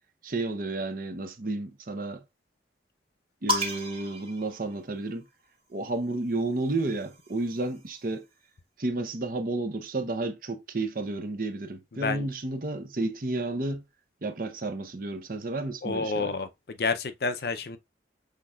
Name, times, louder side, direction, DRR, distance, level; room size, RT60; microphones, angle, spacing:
voice 1, 0.2-2.2 3.4-5.3 5.7-8.3 8.8-13.8 14.2-16.3, right 2 dB, 50° right, 0.7 m, -31 dB
sound 1, 3.5-5.3 6.4-8.0, left 1 dB, 30° right, 1.2 m, -34 dB
voice 2, 11.9-12.3 15.8-17.8, left 4 dB, 55° left, 0.5 m, -30 dB
5.9 x 3.5 x 2.4 m
head